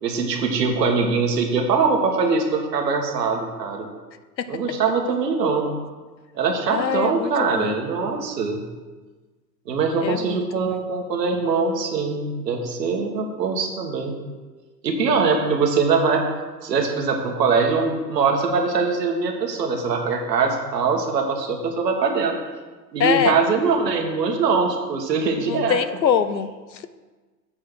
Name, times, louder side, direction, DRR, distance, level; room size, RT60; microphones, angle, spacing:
voice 1, 0.0-3.9 4.5-5.7 6.3-8.6 9.6-14.2 14.8-16.2 16.6-22.3 22.9-25.8, right 4 dB, 75° right, 3 dB, 1.8 m, -22 dB
voice 2, 6.7-7.8 10.0-10.8 23.0-23.4 25.4-26.9, left 8 dB, 90° left, 12 dB, 0.7 m, -24 dB
7.6 x 6.7 x 6.2 m, 1.3 s
figure-of-eight pair, 95°, 50 cm